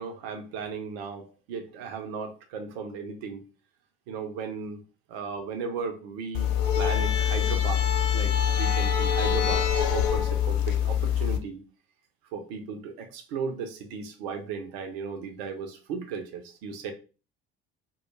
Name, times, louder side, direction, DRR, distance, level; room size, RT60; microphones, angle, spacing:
voice 1, 0.0-3.4 4.1-4.8 5.1-7.9 8.1-11.6 12.3-16.9, right 5 dB, 65° right, 5 dB, 0.6 m, -36 dB
sound 1, 6.3-11.4, left 9 dB, 60° left, 0.5 m, -24 dB
2.2 x 2.1 x 3.1 m, 0.34 s
figure-of-eight pair, 55°, 32 cm